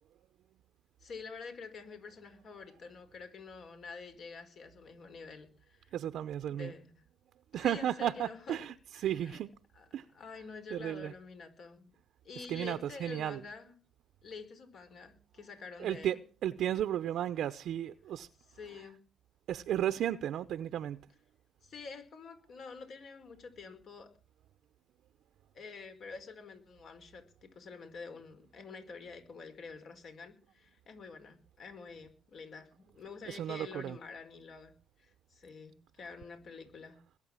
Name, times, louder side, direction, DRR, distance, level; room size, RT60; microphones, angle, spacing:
voice 1, 1.0-5.9 6.5-7.0 7.5-8.6 8.9-9.4 9.7-9.9 10.1-11.9 12.2-13.8 14.2-16.2 18.5-19.0 21.6-24.1 25.5-37.0, left 4 dB, 60° left, 4.8 m, -48 dB
voice 2, 5.9-6.7 7.5-9.5 9.9-10.0 10.3-10.4 10.7-11.1 12.3-13.4 15.8-18.3 18.7-18.8 19.5-21.1 33.3-34.0 36.0-36.1, right 11 dB, 75° right, 0.7 m, -34 dB
21.5 x 8.9 x 7.3 m
cardioid pair, 90°, 0 cm